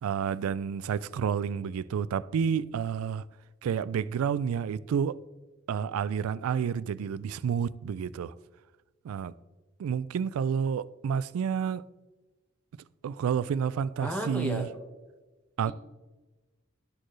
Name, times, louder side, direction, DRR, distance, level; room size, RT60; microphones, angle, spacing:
voice 1, 0.0-3.2 3.6-5.2 5.7-8.3 9.0-9.3 9.8-11.8 13.0-14.7 15.6-15.7, right 7 dB, 85° right, 0.3 m, -30 dB
voice 2, 14.0-14.6 15.7-15.8, equal, 5° left, 1.1 m, -32 dB
12.5 x 4.3 x 3.1 m
head